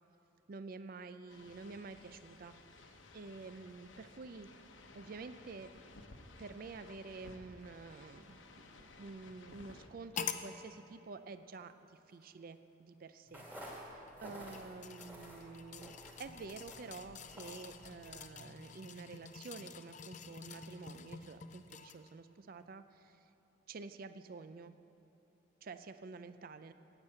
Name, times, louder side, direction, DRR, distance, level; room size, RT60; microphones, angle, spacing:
voice 1, 0.5-4.5 4.9-5.7 6.4-11.7 12.1-23.2 23.7-24.7 25.6-26.7, right 4 dB, 50° right, 11 dB, 0.4 m, -49 dB
sound 1, 1.3-9.9, left 2 dB, 85° left, 1.1 m, -57 dB
sound 2, 10.2-10.5 11.5-11.6 14.0-22.1 22.6-22.7, left 6 dB, 40° left, 0.5 m, -47 dB
sound 3, 13.3-18.3, equal, 10° right, 2.2 m, -52 dB
12.0 x 8.8 x 7.8 m, 3.0 s
head